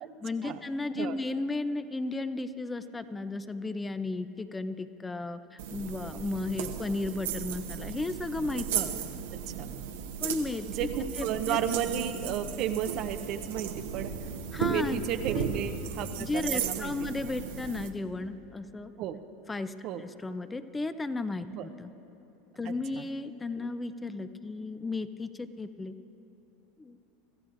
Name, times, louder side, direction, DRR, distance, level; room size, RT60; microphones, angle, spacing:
voice 1, 0.2-8.7 10.2-10.7 11.2-11.6 14.5-15.0 15.3-15.5 16.2-18.9 19.5-21.9 22.6-25.9 26.8-27.0, left 3 dB, 15° left, 11 dB, 0.5 m, -34 dB
sound 1, 5.6-17.9, right 7 dB, 80° right, 1.0 m, -35 dB
voice 2, 10.7-14.1 14.7-16.9 19.0-19.2 19.8-20.0 21.5-21.7 23.0-23.1, right 9 dB, 55° right, 8 dB, 0.6 m, -33 dB
25.0 x 14.0 x 2.6 m, 3.0 s
hypercardioid pair, 95°, 0 cm